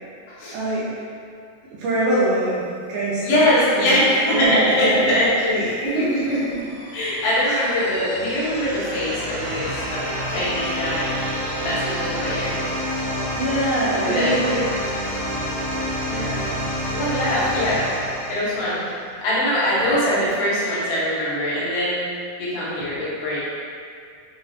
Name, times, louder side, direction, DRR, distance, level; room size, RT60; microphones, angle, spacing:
voice 1, 0.5-0.9 1.8-2.6 2.9-3.4 3.7-5.2 5.5-5.6 6.0-6.6 7.5-7.6 13.4-14.6 16.1-16.5, right 1 dB, 80° right, -8 dB, 2.2 m, -23 dB
voice 2, 3.2-6.4 6.9-11.1 11.6-12.6 14.0-14.4 16.9-17.9 18.3-18.8 19.2-22.0 22.4-23.4, left 1 dB, 75° left, -9 dB, 3.0 m, -22 dB
sound 1, 5.3-19.1, equal, 55° right, 2.5 m, -29 dB
7.4 x 2.8 x 2.4 m, 2.3 s
omnidirectional pair, 4.7 m